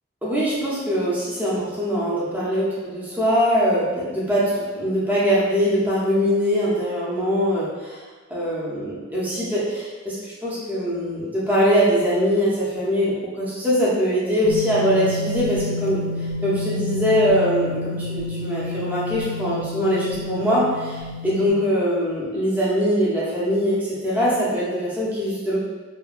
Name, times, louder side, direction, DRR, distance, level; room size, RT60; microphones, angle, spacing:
voice 1, 0.2-8.0 8.3-16.0 16.4-25.6, equal, 10° right, -8 dB, 0.5 m, -22 dB
sound 1, 14.4-21.5, left 2 dB, 70° left, 0.4 m, -29 dB
2.7 x 2.2 x 2.4 m, 1.3 s
head